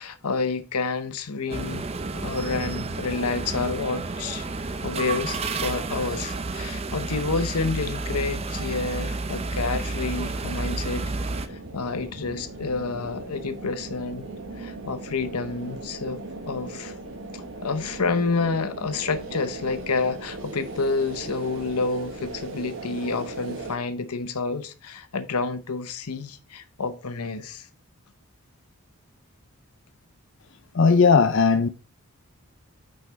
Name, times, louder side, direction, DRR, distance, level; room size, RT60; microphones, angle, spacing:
voice 1, 0.0-1.9 2.1-4.5 4.8-11.1 11.5-14.3 14.6-17.0 17.3-27.7, left 4 dB, 90° left, 0.8 m, -29 dB
sound 1, 1.5-11.5, right 3 dB, 25° right, 0.5 m, -31 dB
sound 2, 9.2-23.8, right 2 dB, 55° right, 1.2 m, -38 dB
voice 2, 30.7-31.7, left 5 dB, 55° left, 0.5 m, -17 dB
6.2 x 5.7 x 4.2 m
head